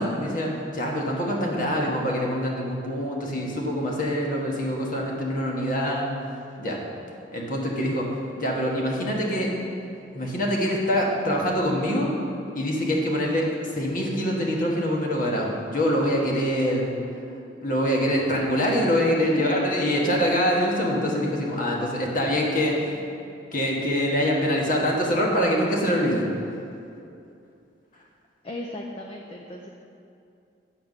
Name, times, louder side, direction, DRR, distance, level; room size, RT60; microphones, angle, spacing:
voice 1, 0.0-6.1 6.6-6.8 7.3-8.1 8.4-9.5 10.1-12.1 12.5-13.4 13.7-17.0 17.6-23.0 23.5-26.2, equal, 50° left, -2 dB, 1.4 m, -24 dB
voice 2, 19.2-19.7 27.9-28.1 28.4-29.7, left 2 dB, 35° left, 0 dB, 0.6 m, -34 dB
9.0 x 4.5 x 6.7 m, 2.6 s
head